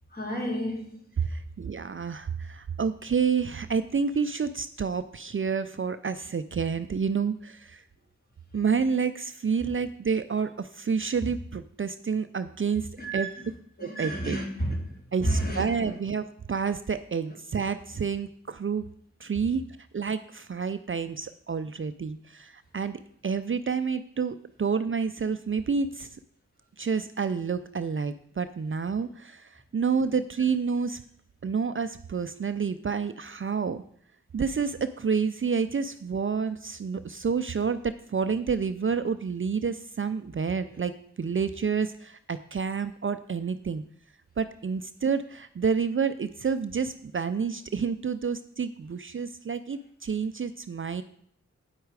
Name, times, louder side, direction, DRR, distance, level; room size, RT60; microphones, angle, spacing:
voice 1, 0.1-1.0 13.0-13.4 13.8-15.9, right 1 dB, 30° left, -1 dB, 3.0 m, -31 dB
voice 2, 1.2-7.8 8.5-13.3 13.8-14.4 15.1-18.9 19.2-19.6 19.9-26.1 26.8-31.0 31.4-33.8 34.3-40.9 41.2-43.8 44.4-51.0, right 6 dB, 45° right, 11 dB, 0.5 m, -29 dB
9.2 x 8.0 x 4.8 m, 0.63 s
wide cardioid pair, 60°, 29 cm